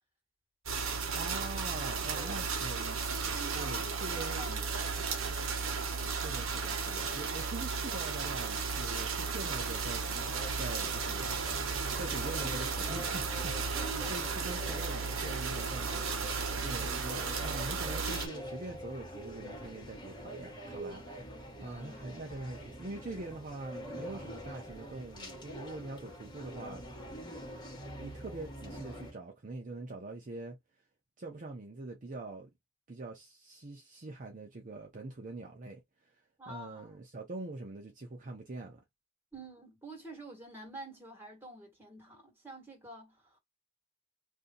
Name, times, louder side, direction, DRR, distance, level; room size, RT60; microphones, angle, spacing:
sound 1, 0.7-18.3, right 5 dB, 70° right, 1.0 m, -34 dB
voice 1, 1.1-3.2 3.5-4.4 6.1-11.3 12.0-13.8 14.1-16.4 16.6-26.9 28.0-30.6 31.2-32.5 32.9-36.2 36.5-38.8, right 2 dB, 40° right, 0.7 m, -44 dB
voice 2, 2.1-2.5 3.3-4.9 13.7-14.4 16.3-16.8 21.6-22.3 36.4-37.0 39.3-43.4, right 2 dB, 10° right, 1.8 m, -48 dB
sound 2, 9.7-29.1, equal, 20° left, 1.4 m, -45 dB
2.7 x 2.7 x 3.8 m
head